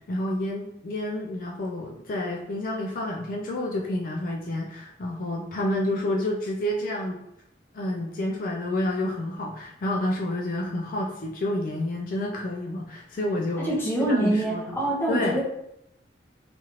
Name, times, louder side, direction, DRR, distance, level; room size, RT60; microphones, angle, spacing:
voice 1, 0.0-7.2 7.7-13.7 14.0-15.4, left 1 dB, 50° left, -1 dB, 0.3 m, -29 dB
voice 2, 13.6-15.4, right 1 dB, 15° left, -5 dB, 0.8 m, -25 dB
2.8 x 2.5 x 2.9 m, 0.80 s
head